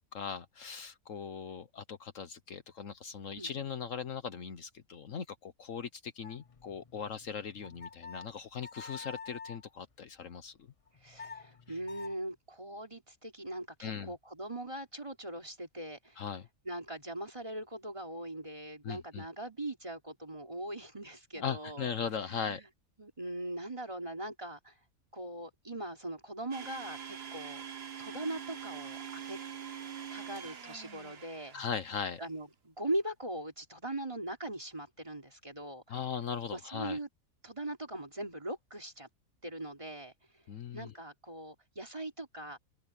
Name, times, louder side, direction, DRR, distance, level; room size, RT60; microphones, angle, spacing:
voice 1, 0.1-10.6 13.8-14.1 16.2-16.5 18.8-19.3 21.4-22.6 31.5-32.2 35.9-37.0 40.5-40.9, left 7 dB, 65° left, 1.3 m, -39 dB
sound 1, 6.2-9.6 10.9-12.1, left 5 dB, 35° left, 0.5 m, -48 dB
voice 2, 11.0-16.2 16.6-21.9 22.3-22.7 23.0-24.7 25.1-27.6 28.0-29.4 30.1-31.5 32.2-35.8 36.5-37.1 37.4-39.1 39.4-40.1 40.7-42.6, right 1 dB, 20° right, 3.4 m, -40 dB
Domestic sounds home sounds, 26.5-32.0, right 8 dB, 45° right, 1.4 m, -44 dB
open air
omnidirectional pair, 1.5 m